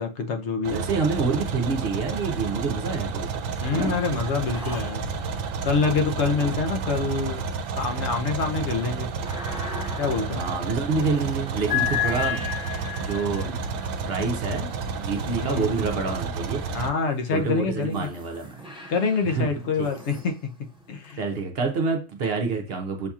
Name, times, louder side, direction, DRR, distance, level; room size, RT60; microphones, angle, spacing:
voice 1, 0.0-0.8 3.6-5.2 5.6-7.4 7.7-9.1 10.0-10.4 15.4-15.8 16.7-18.1 18.9-20.5 20.9-21.2, left 4 dB, 65° left, 5 dB, 0.9 m, -26 dB
sound 1, 0.6-16.9, right 4 dB, 90° right, 1.0 m, -31 dB
voice 2, 0.7-3.4 3.7-3.9 6.2-6.5 10.3-12.5 13.0-13.6 14.1-16.6 17.3-18.6 19.2-19.5 19.8-19.9 21.2-23.1, right 4 dB, 55° right, 4 dB, 0.8 m, -27 dB
sound 2, 2.1-2.8 3.1-16.3 16.9-21.4, left 8 dB, 5° right, 1.2 m, -36 dB
6.9 x 2.8 x 2.3 m, 0.35 s
omnidirectional pair, 1.3 m